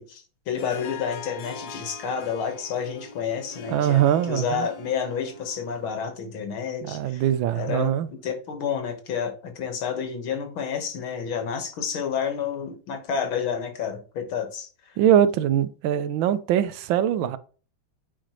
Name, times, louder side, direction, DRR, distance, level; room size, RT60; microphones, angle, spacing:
voice 1, 0.0-7.2 7.5-15.0, left 7 dB, 85° left, 2.1 m, -30 dB
Harp, 0.6-6.0, left 4 dB, 60° left, 1.3 m, -42 dB
voice 2, 3.7-4.7 6.8-8.1 15.0-17.4, right 10 dB, 80° right, 1.3 m, -22 dB
8.8 x 4.9 x 3.0 m
omnidirectional pair, 2.2 m